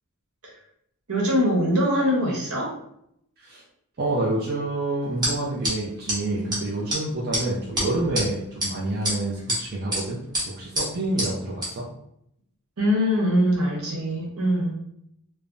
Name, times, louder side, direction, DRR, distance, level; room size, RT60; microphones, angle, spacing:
voice 1, 1.1-2.7 12.8-14.7, equal, 80° right, -2 dB, 1.0 m, -22 dB
voice 2, 4.0-11.9, right 2 dB, 45° right, -4 dB, 0.4 m, -28 dB
sound 1, 5.2-5.3 5.6-5.7 6.1-6.2 6.5-6.6 6.9-7.0 7.3-7.4 7.8-8.2 8.6-8.7 9.0-9.6 9.9-10.0 10.3-10.4 10.7-10.9 11.2-11.3 11.6-11.7, equal, 20° right, 0.9 m, -25 dB
3.3 x 2.0 x 2.5 m, 0.74 s
head